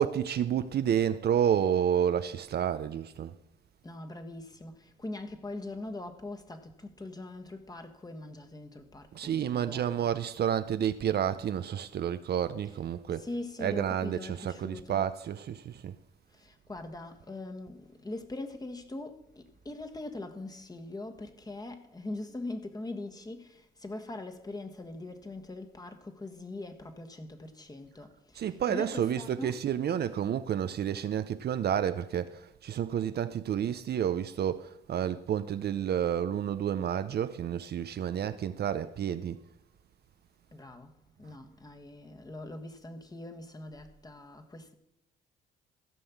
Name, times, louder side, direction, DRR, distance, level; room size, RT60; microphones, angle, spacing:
voice 1, 0.0-3.3 9.1-13.3 13.6-15.9 28.4-39.4, right 9 dB, 55° right, 0.6 m, -30 dB
voice 2, 3.8-10.1 13.1-15.1 16.3-29.6 40.5-44.7, left 2 dB, 20° left, 1.5 m, -42 dB
15.0 x 5.6 x 7.1 m
cardioid pair, 90°, 20 cm